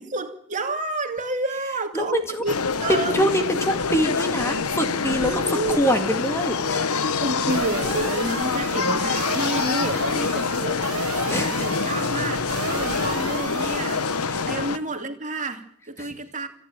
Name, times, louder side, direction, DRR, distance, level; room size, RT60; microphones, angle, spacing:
voice 1, 0.0-3.3 5.2-5.8 7.2-10.8 11.1-12.4 12.7-16.5, right 2 dB, 35° right, 2.6 m, -30 dB
voice 2, 1.9-2.4 3.1-7.0 11.3-11.6 13.5-13.6 14.3-14.4 16.0-16.1, equal, 10° left, 2.1 m, -25 dB
sound 1, 2.5-14.8, left 5 dB, 90° left, 1.1 m, -26 dB
sound 2, 7.5-14.2, right 6 dB, 85° right, 1.8 m, -34 dB
28.0 x 11.0 x 9.0 m
head